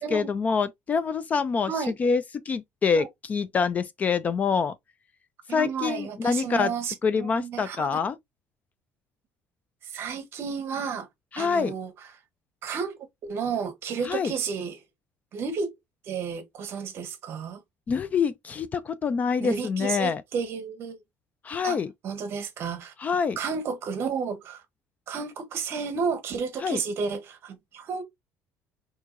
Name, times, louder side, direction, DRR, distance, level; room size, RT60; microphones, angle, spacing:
voice 1, 0.0-1.7 2.0-4.7 5.5-6.7 7.0-8.2 11.3-11.7 14.0-14.3 17.9-20.2 21.4-21.9 23.0-23.4 26.6-26.8, left 5 dB, 25° left, 0.3 m, -26 dB
voice 2, 5.5-8.0 9.9-11.1 11.4-11.9 12.6-14.8 15.3-15.7 16.0-17.6 19.4-21.0 21.6-21.8 22.0-22.9 23.4-24.6 25.1-28.0, right 6 dB, 45° right, 1.1 m, -32 dB
4.4 x 2.8 x 2.5 m
cardioid pair, 160°, 6 cm